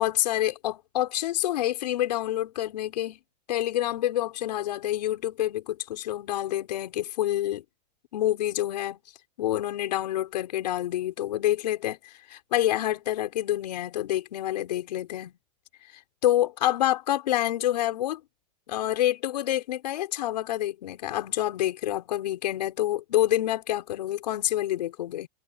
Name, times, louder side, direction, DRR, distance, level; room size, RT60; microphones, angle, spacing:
voice 1, 0.0-3.2 3.5-7.6 8.1-9.0 9.4-15.3 16.2-18.2 18.7-25.3, left 13 dB, 80° left, 5.5 m, -27 dB
supercardioid pair, 180°, 21 cm